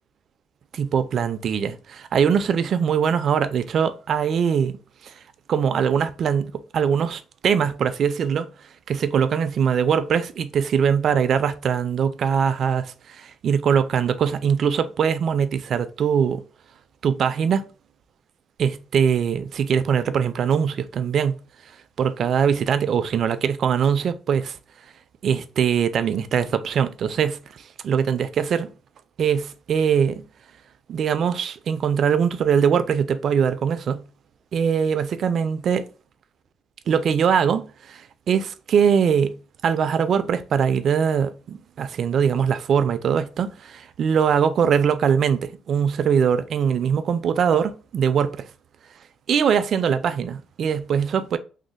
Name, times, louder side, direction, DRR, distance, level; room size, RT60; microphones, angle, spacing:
voice 1, 0.7-5.1 5.5-8.5 8.9-16.4 17.0-17.6 18.6-21.4 22.0-24.6 25.2-28.7 29.2-30.2 30.9-34.0 34.5-35.8 36.9-39.4 39.6-48.5 49.3-51.4, right 7 dB, 50° right, 0.3 m, -22 dB
3.1 x 2.0 x 3.9 m
cardioid pair, 135°, 0 cm